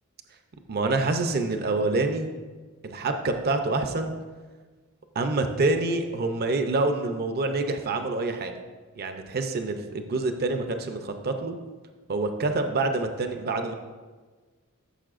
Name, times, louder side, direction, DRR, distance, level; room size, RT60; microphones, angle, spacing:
voice 1, 0.7-2.3 2.8-4.1 5.1-8.5 9.0-11.6 12.1-13.7, right 3 dB, 45° right, 6 dB, 0.6 m, -26 dB
14.0 x 6.8 x 2.5 m, 1.4 s
head